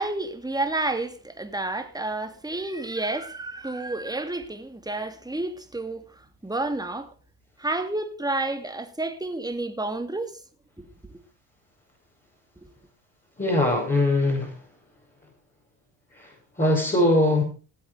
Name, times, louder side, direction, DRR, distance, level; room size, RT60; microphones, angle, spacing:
voice 1, 0.0-6.0 6.4-7.1 7.6-10.4 10.8-11.2 12.6-12.7, right 2 dB, 10° right, 2.7 m, -30 dB
voice 2, 13.4-14.6 16.2-16.3 16.6-17.4, left 1 dB, 15° left, 6.4 m, -21 dB
19.0 x 7.9 x 5.1 m
supercardioid pair, 75°, 46 cm